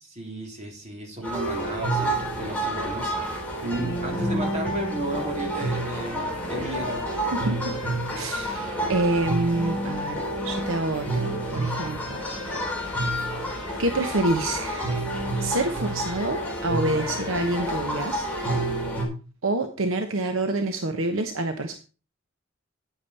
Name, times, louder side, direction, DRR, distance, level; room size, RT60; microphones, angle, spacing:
voice 1, 0.1-7.0, right 1 dB, 35° right, 1 dB, 3.1 m, -33 dB
sound 1, 1.2-19.0, right 1 dB, 10° left, 3.2 m, -29 dB
voice 2, 8.1-12.2 12.8-15.1 15.4-18.3 19.4-21.8, right 2 dB, 70° right, 7 dB, 1.0 m, -27 dB
9.5 x 8.9 x 4.2 m, 0.34 s
head